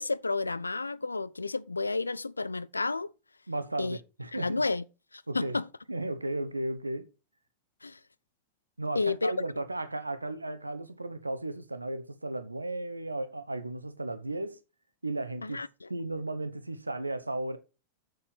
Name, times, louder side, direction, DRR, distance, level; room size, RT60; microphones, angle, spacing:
voice 1, 0.0-3.1 3.8-4.0 4.3-4.8 5.1-5.7 7.8-8.0 9.0-9.3 15.4-15.9, left 3 dB, 80° left, 0.5 m, -31 dB
voice 2, 3.5-4.6 5.3-5.6 5.9-7.1 8.8-14.6 15.0-15.6 15.9-17.6, right 2 dB, 85° right, 0.9 m, -35 dB
7.1 x 6.5 x 6.0 m
figure-of-eight pair, 90°, 0 cm